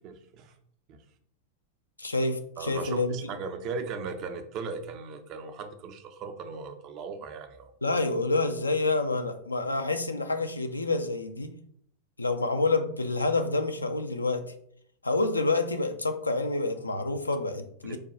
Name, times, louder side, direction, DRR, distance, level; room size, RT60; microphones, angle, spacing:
voice 1, 0.0-0.5 0.9-1.0 2.6-7.7 17.8-18.0, right 5 dB, 40° right, 8 dB, 0.5 m, -37 dB
voice 2, 2.0-3.2 7.8-11.5 12.2-14.4 15.0-18.0, left 3 dB, 80° left, 7 dB, 0.4 m, -28 dB
3.3 x 2.2 x 4.1 m, 0.64 s
figure-of-eight pair, 90°, 0 cm